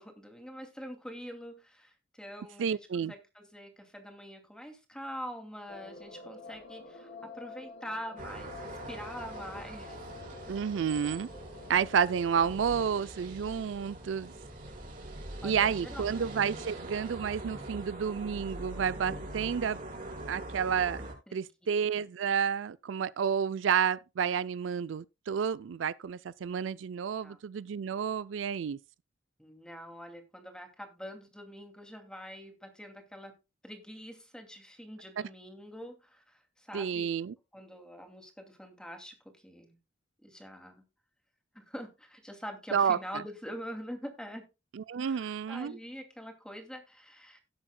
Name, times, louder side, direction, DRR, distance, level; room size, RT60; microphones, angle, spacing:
voice 1, 0.0-10.0 15.4-16.2 21.3-21.5 27.2-27.4 29.4-33.4 33.6-37.1 37.5-39.8 40.2-40.8 41.5-44.5 45.0-47.4, equal, 5° left, 2.4 m, -45 dB
voice 2, 2.6-3.1 10.5-11.3 11.7-14.3 15.4-19.8 20.3-21.0 21.3-28.8 36.7-37.3 42.7-43.2 44.7-45.8, right 7 dB, 85° right, 0.4 m, -30 dB
sound 1, 5.7-13.0, left 3 dB, 85° left, 3.1 m, -48 dB
sound 2, 8.2-21.1, right 1 dB, 50° right, 4.6 m, -43 dB
17.5 x 7.7 x 2.2 m
head